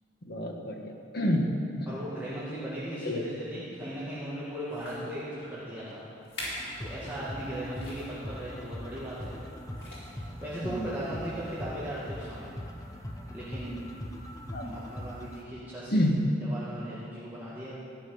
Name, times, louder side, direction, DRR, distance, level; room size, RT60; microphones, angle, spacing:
voice 1, 0.2-1.5 1.8-1.9 3.0-3.2 10.6-10.9 14.5-14.7 15.9-16.2, equal, 60° left, 1 dB, 1.6 m, -28 dB
voice 2, 1.9-6.0 6.8-9.3 10.4-12.5 13.3-13.9 14.6-16.0 16.4-17.7, right 1 dB, 10° right, -11 dB, 2.1 m, -37 dB
sound 1, 4.0-4.1 4.7-5.1 5.8-5.9 6.2-6.7 7.0-7.2 7.7-8.2 9.2-9.5 9.7-10.3 11.0-11.1, left 1 dB, 85° left, 4.1 m, -42 dB
sound 2, 6.4-15.4, equal, 20° left, 1.1 m, -41 dB
14.5 x 6.6 x 9.6 m, 2.6 s
head